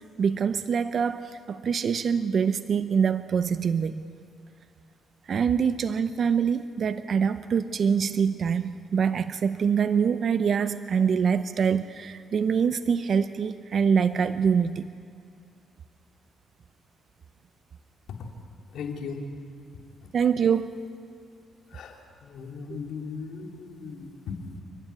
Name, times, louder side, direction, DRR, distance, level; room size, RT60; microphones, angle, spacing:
voice 1, 0.2-4.0 5.3-14.9 20.1-20.7 22.7-22.8, right 6 dB, 55° right, 11 dB, 0.7 m, -25 dB
voice 2, 18.7-19.2 21.7-24.6, left 5 dB, 75° left, 2 dB, 3.1 m, -37 dB
29.5 x 12.0 x 9.8 m, 2.3 s
cardioid pair, 90°, 0 cm